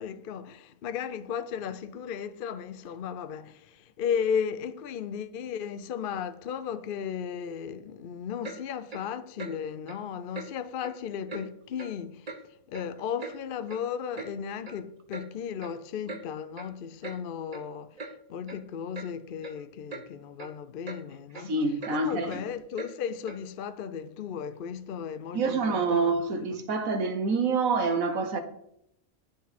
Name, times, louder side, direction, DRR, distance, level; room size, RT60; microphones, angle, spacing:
voice 1, 0.0-12.3 12.7-26.2, left 7 dB, 60° left, 0.5 m, -35 dB
Clock, 8.4-8.6 8.9-9.1 9.4-9.5 9.9-10.0 10.3-10.5 10.8-11.0 11.3-11.4 11.8-11.9 12.3-12.4 12.7-13.4 13.7-13.8 14.1-14.3 14.6-14.8 15.1-15.3 15.6-15.7 16.1-16.2 16.6-16.7 17.0-17.2 17.5-17.6 18.0-18.1 18.5-18.6 18.9-19.1 19.4-19.6 19.9-20.0 20.4-20.5 20.8-21.0 21.3-21.4 21.8-21.9 22.3-22.4 22.8-22.9 23.3-23.4, right 3 dB, 30° right, 0.9 m, -40 dB
voice 2, 21.5-22.3 25.3-28.4, right 4 dB, 70° right, 1.5 m, -26 dB
9.3 x 8.3 x 4.2 m
omnidirectional pair, 1.5 m